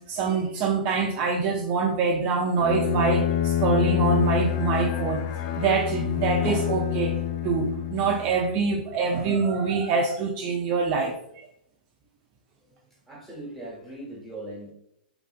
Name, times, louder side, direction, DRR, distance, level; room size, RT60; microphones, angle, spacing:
voice 1, 0.1-5.2 5.6-7.2 7.4-11.5, right 5 dB, 35° right, 2 dB, 0.3 m, -25 dB
Bowed string instrument, 2.6-8.4, left 11 dB, 40° left, 0.4 m, -26 dB
voice 2, 13.1-14.7, right 1 dB, ahead, -4 dB, 1.1 m, -39 dB
3.2 x 2.4 x 2.4 m, 0.75 s
hypercardioid pair, 130°, 5 cm